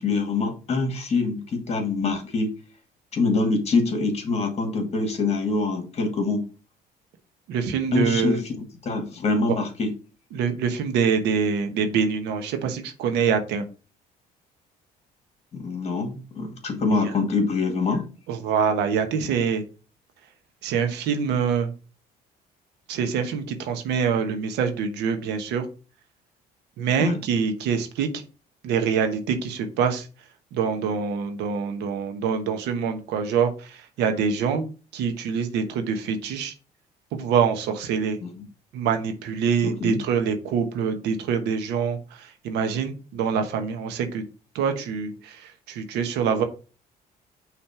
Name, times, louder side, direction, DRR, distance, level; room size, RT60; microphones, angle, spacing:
voice 1, 0.0-2.5 3.1-6.4 7.9-9.9 15.5-18.1 27.0-27.2 38.2-38.4 39.6-40.0, left 3 dB, 40° left, 4 dB, 2.1 m, -25 dB
voice 2, 7.5-8.4 10.3-13.7 17.0-17.1 18.3-19.6 20.6-21.7 22.9-25.7 26.8-28.1 28.6-30.1 30.5-36.5 37.1-38.2 38.7-44.2 44.5-46.4, right 6 dB, 85° right, 7 dB, 1.2 m, -25 dB
5.8 x 3.3 x 5.7 m, 0.34 s
cardioid pair, 110°, 17 cm